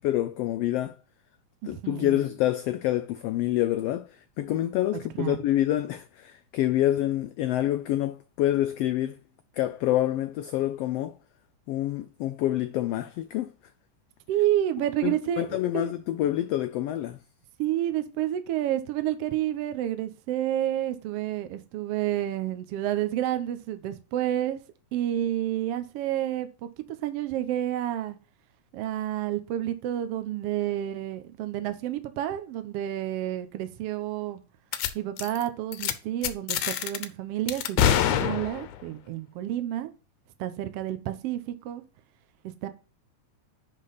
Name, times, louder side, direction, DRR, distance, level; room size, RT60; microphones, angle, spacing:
voice 1, 0.0-1.0 1.6-9.2 9.5-11.2 11.7-13.5 15.0-17.2, left 13 dB, 90° left, 1.3 m, -27 dB
voice 2, 1.6-2.2 5.2-5.4 14.3-16.0 17.6-24.6 24.9-26.7 27.0-28.2 28.7-34.4 34.9-39.9 40.4-41.8 42.4-42.7, right 12 dB, 70° right, 1.5 m, -30 dB
sound 1, 34.7-34.9 35.2-35.4 35.7-35.9 36.2-37.1 37.5-38.8, left 10 dB, 70° left, 1.7 m, -25 dB
10.0 x 3.8 x 4.0 m
omnidirectional pair, 3.4 m